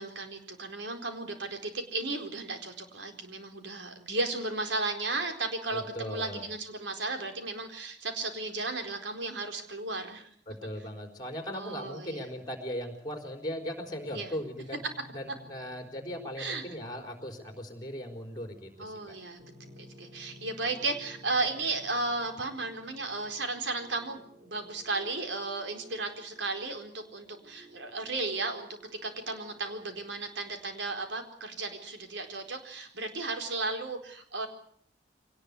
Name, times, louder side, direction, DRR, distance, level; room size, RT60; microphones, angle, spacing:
voice 1, 0.0-10.3 11.5-12.3 14.1-14.3 16.4-16.6 18.8-28.7 29.0-34.5, right 3 dB, 80° right, 5 dB, 4.3 m, -34 dB
voice 2, 5.7-6.5 10.5-14.8 15.1-19.2, equal, 25° left, 4 dB, 4.1 m, -38 dB
sound 1, 14.4-30.0, equal, 45° right, 5.4 m, -54 dB
24.0 x 19.0 x 8.4 m, 0.64 s
head